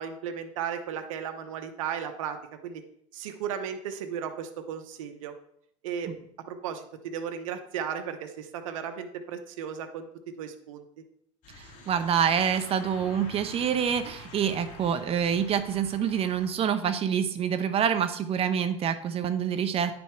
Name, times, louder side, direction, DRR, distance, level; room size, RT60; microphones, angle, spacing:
voice 1, 0.0-2.4 2.6-2.8 3.1-5.3 5.8-6.1 6.5-10.1 10.4-10.8, right 8 dB, 90° right, 7 dB, 0.8 m, -35 dB
sound 1, 11.4-16.5, left 2 dB, 50° left, 2.2 m, -47 dB
voice 2, 11.6-20.0, right 8 dB, 35° right, 9 dB, 0.9 m, -27 dB
9.5 x 5.3 x 4.5 m, 0.70 s
supercardioid pair, 115°, 16 cm